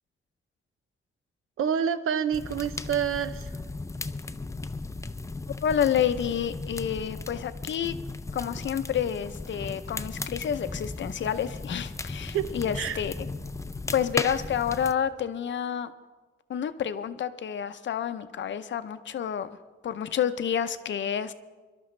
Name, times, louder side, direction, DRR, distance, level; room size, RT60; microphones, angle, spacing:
voice 1, 1.6-3.5 12.3-13.0, right 8 dB, 90° right, 12 dB, 0.6 m, -28 dB
sound 1, 2.3-14.9, left 3 dB, 15° left, 0.4 m, -36 dB
voice 2, 5.6-7.9 8.3-13.3 13.9-15.9 16.5-19.6 19.8-21.3, left 8 dB, 60° left, 11 dB, 0.6 m, -29 dB
24.5 x 12.0 x 3.2 m, 1.3 s
wide cardioid pair, 120°, 21 cm